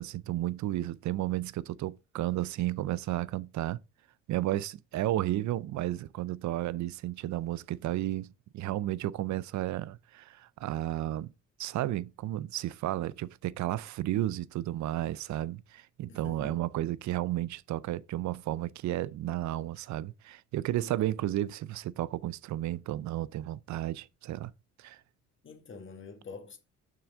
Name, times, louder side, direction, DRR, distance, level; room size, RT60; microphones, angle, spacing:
voice 1, 0.0-3.8 4.3-11.3 11.6-24.5 24.8-25.0, right 14 dB, 70° right, 0.5 m, -33 dB
voice 2, 16.1-16.6 20.7-21.1 25.4-26.6, left 4 dB, 40° left, 1.6 m, -47 dB
6.8 x 6.1 x 3.6 m
cardioid pair, 90°, 30 cm